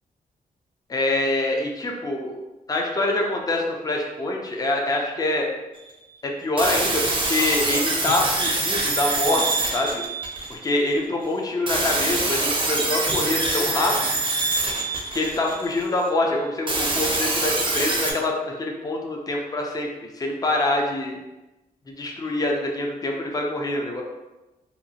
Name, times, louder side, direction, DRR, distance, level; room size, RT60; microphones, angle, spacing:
voice 1, 0.9-2.4 2.7-5.5 6.2-10.0 10.5-14.0 15.1-21.2 21.9-24.0, left 2 dB, 25° left, 0 dB, 0.4 m, -25 dB
sound 1, 6.6-10.8 11.7-15.9 16.7-18.1, right 2 dB, 35° right, 0.6 m, -25 dB
2.7 x 2.4 x 2.7 m, 1.0 s
wide cardioid pair, 125°, 16 cm